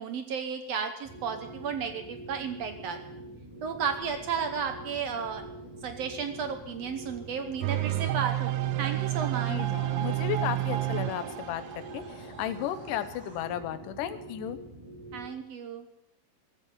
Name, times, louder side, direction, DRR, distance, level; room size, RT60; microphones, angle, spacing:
voice 1, 0.0-3.0 3.6-5.4 5.8-9.6 15.1-15.9, right 6 dB, 70° right, 7 dB, 1.7 m, -33 dB
sound 1, 1.0-15.3, right 1 dB, 10° right, 2.0 m, -45 dB
sound 2, 3.4-13.4, right 1 dB, 25° right, 6.2 m, -54 dB
sound 3, 7.6-13.3, right 15 dB, 85° right, 2.4 m, -30 dB
voice 2, 9.5-14.6, left 11 dB, 80° left, 10 dB, 2.4 m, -34 dB
14.5 x 14.0 x 5.4 m, 0.81 s
omnidirectional pair, 3.8 m